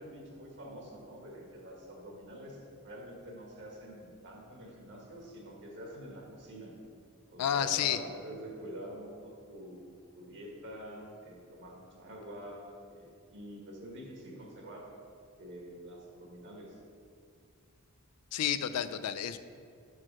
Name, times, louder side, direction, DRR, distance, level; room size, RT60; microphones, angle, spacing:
voice 1, 0.0-6.7 7.3-9.9 10.1-14.8 15.4-16.7, equal, 55° right, -1 dB, 1.4 m, -46 dB
voice 2, 7.4-8.0 18.3-19.4, left 9 dB, 85° left, 12 dB, 0.4 m, -30 dB
5.9 x 4.7 x 6.1 m, 2.3 s
head